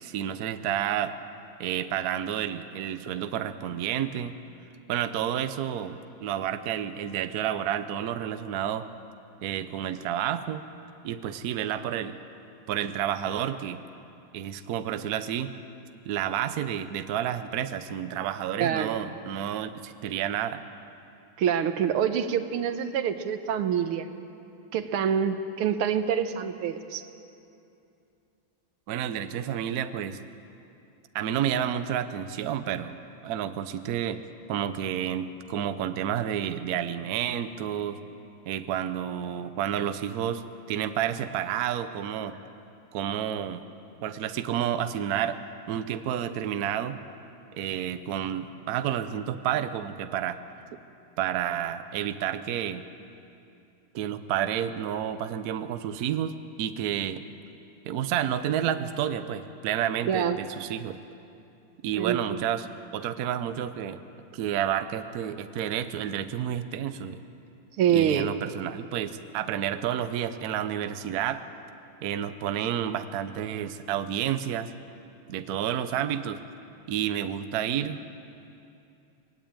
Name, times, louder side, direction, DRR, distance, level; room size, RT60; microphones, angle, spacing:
voice 1, 0.0-1.1 1.6-4.3 4.9-8.9 9.4-10.6 11.0-12.2 12.7-13.8 14.3-15.5 16.0-20.6 28.9-30.2 31.1-34.2 34.5-38.0 38.5-42.4 42.9-43.6 44.0-45.4 45.7-47.0 47.5-50.4 51.2-52.8 53.9-57.2 57.8-61.0 61.8-64.0 64.3-67.2 67.9-71.4 72.0-74.7 75.3-76.4 76.9-78.0, right 10 dB, 60° right, 10 dB, 1.0 m, -30 dB
voice 2, 18.6-19.0 21.4-24.1 24.7-27.0 60.1-60.4 62.0-62.4 67.8-68.3, right 8 dB, 85° right, 9 dB, 1.8 m, -26 dB
20.5 x 16.0 x 9.0 m, 2.7 s
omnidirectional pair, 2.4 m